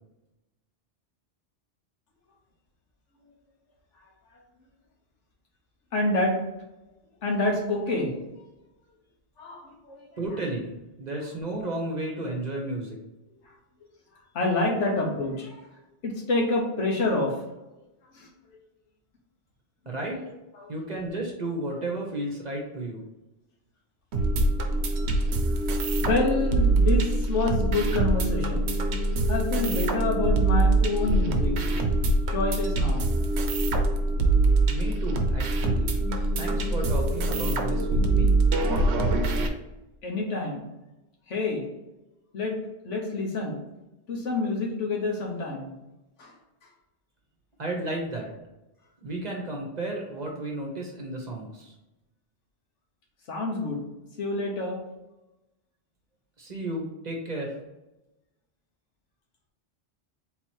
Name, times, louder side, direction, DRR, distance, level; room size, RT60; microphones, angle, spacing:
voice 1, 5.9-6.4 7.2-8.1 9.4-10.0 14.3-15.6 16.0-17.3 18.1-18.3 19.9-20.0 20.6-20.7 26.0-28.7 29.3-31.5 32.3-33.1 36.2-36.3 40.0-40.6 41.3-41.6 42.3-42.6 42.8-43.6 44.1-45.7 46.2-46.3 53.3-53.9 54.2-54.8, left 2 dB, 80° left, 0 dB, 1.4 m, -27 dB
voice 2, 10.2-13.0 19.9-20.2 20.7-23.1 34.7-35.9 36.4-38.4 47.6-48.3 49.0-51.7 56.4-57.5, right 2 dB, 40° right, 0 dB, 0.9 m, -33 dB
sound 1, 24.1-39.5, right 2 dB, 70° right, 0.9 m, -24 dB
3.9 x 3.0 x 4.4 m, 0.98 s
omnidirectional pair, 1.2 m